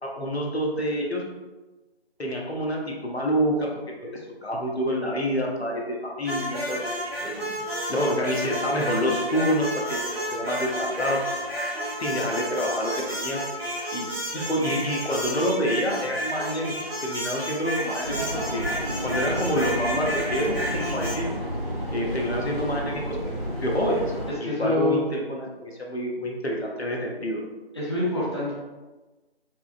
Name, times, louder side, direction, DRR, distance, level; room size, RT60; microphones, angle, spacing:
voice 1, 0.0-1.2 2.2-3.7 4.0-6.8 7.2-7.6 7.9-11.2 12.0-13.4 13.9-18.7 19.0-21.3 21.9-23.3 23.6-27.4, equal, 80° left, -1 dB, 0.9 m, -27 dB
sound 1, 6.2-21.2, equal, 70° right, 1.0 m, -31 dB
sound 2, 18.0-24.3, equal, 50° right, 1.5 m, -31 dB
voice 2, 24.4-25.0 27.7-28.5, left 2 dB, 25° left, -8 dB, 0.6 m, -25 dB
4.6 x 2.0 x 2.6 m, 1.2 s
figure-of-eight pair, 160°, 32 cm